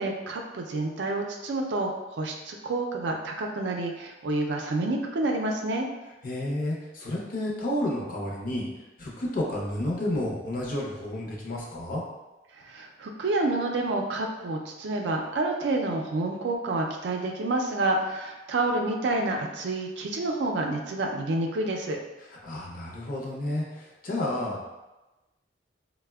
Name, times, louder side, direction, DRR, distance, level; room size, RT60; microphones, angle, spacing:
voice 1, 0.0-5.9 12.6-22.0, right 2 dB, 70° right, 2 dB, 0.4 m, -28 dB
voice 2, 6.2-8.7 9.0-12.0 22.4-24.6, left 1 dB, 50° left, -3 dB, 0.6 m, -31 dB
4.0 x 2.1 x 2.2 m, 1.1 s
head